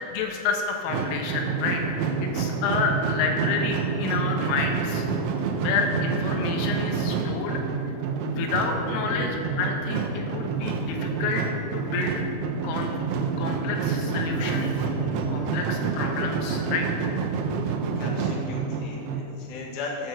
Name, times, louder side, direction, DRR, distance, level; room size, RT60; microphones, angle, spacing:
voice 1, 0.1-1.8 2.3-5.1 5.6-7.6 8.3-11.4 11.7-12.2 12.6-12.9 13.4-15.0 15.3-16.9, left 5 dB, 85° left, 2 dB, 3.8 m, -29 dB
sound 1, 0.9-19.2, right 5 dB, 80° right, 2.3 m, -28 dB
voice 2, 15.0-15.6 18.0-20.1, left 2 dB, 55° left, -2 dB, 2.4 m, -37 dB
11.0 x 8.0 x 6.9 m, 2.6 s
omnidirectional pair, 5.7 m